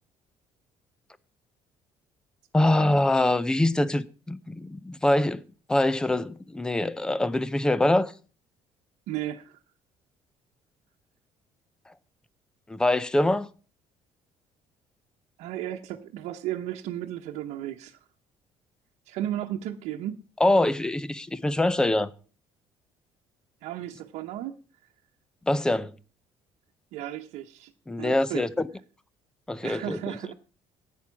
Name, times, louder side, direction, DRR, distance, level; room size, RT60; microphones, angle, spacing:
voice 1, 2.5-5.4 5.7-8.1 12.7-13.5 20.4-22.1 25.5-25.9 27.9-28.7 29.5-30.1, left 1 dB, 5° left, 0.5 m, -24 dB
voice 2, 9.1-9.6 15.4-18.0 19.1-20.3 23.6-24.6 26.9-27.7 28.0-28.4 29.6-30.3, right 12 dB, 85° right, 0.9 m, -34 dB
10.5 x 8.7 x 5.8 m
cardioid pair, 175°, 11 cm